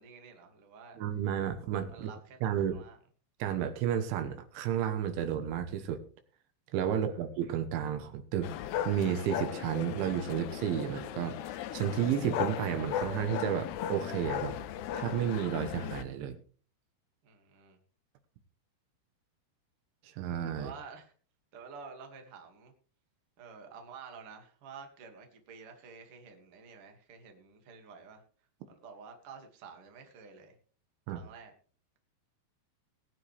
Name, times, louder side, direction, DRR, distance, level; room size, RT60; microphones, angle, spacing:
voice 1, 0.0-1.0 1.9-3.0 6.9-7.2 17.2-17.8 20.6-21.1 21.5-22.7 23.4-28.2 28.7-30.6 31.1-31.5, right 5 dB, 40° right, 4 dB, 2.4 m, -50 dB
voice 2, 1.0-2.1 2.4-2.8 3.4-6.0 6.7-8.5 8.9-14.6 14.9-16.4 20.0-20.7 31.1-31.2, right 9 dB, 80° right, 8 dB, 3.5 m, -32 dB
sound 1, 8.4-16.0, left 11 dB, 75° left, 2.6 m, -37 dB
20.0 x 9.8 x 3.4 m, 0.41 s
omnidirectional pair, 5.4 m